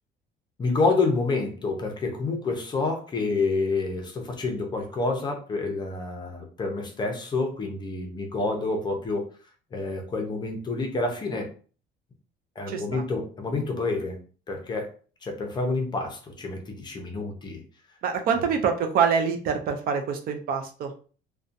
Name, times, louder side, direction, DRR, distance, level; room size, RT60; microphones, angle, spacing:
voice 1, 0.6-9.2 9.7-11.5 12.6-14.2 14.5-14.9 15.2-17.6, left 3 dB, 25° left, 2 dB, 0.5 m, -28 dB
voice 2, 12.7-13.0 18.0-20.9, right 6 dB, 50° right, 5 dB, 0.4 m, -25 dB
2.6 x 2.1 x 2.4 m, 0.39 s
cardioid pair, 165°, 19 cm